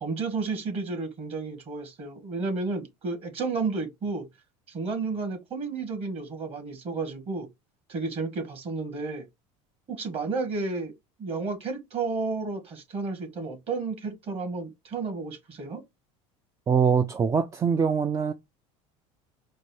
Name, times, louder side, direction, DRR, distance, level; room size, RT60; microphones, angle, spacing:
voice 1, 0.0-4.3 4.7-7.5 7.9-9.3 9.9-10.9 11.2-15.8, right 4 dB, 35° right, 1.8 m, -32 dB
voice 2, 16.7-18.3, right 6 dB, 20° right, 0.3 m, -23 dB
4.6 x 2.3 x 4.3 m
supercardioid pair, 125°, 16 cm